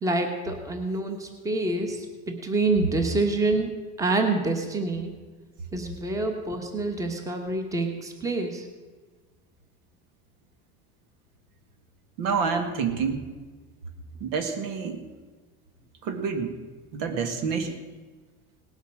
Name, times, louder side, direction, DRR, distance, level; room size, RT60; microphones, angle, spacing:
voice 1, 0.0-5.1 5.7-8.7, right 2 dB, 10° right, 5 dB, 1.3 m, -27 dB
voice 2, 12.2-13.2 14.2-15.0 16.0-16.6 16.9-17.7, right 5 dB, 75° right, 7 dB, 1.9 m, -28 dB
18.5 x 8.1 x 6.4 m, 1.3 s
cardioid pair, 160°, 30 cm